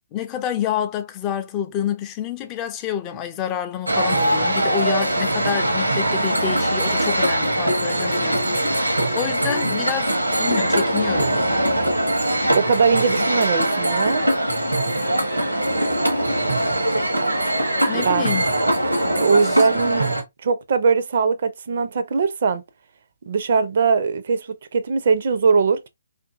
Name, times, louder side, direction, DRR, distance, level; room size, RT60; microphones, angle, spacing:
voice 1, 0.1-10.1 10.4-11.4 17.9-18.5 19.4-19.6, left 10 dB, 20° left, 0.4 m, -28 dB
sound 1, 3.9-20.2, right 1 dB, 90° right, 0.9 m, -21 dB
voice 2, 12.5-14.2 17.9-18.3 19.0-20.1 20.4-22.6 23.3-25.9, right 5 dB, 50° right, 0.4 m, -20 dB
2.5 x 2.5 x 2.3 m
figure-of-eight pair, 135°, 0 cm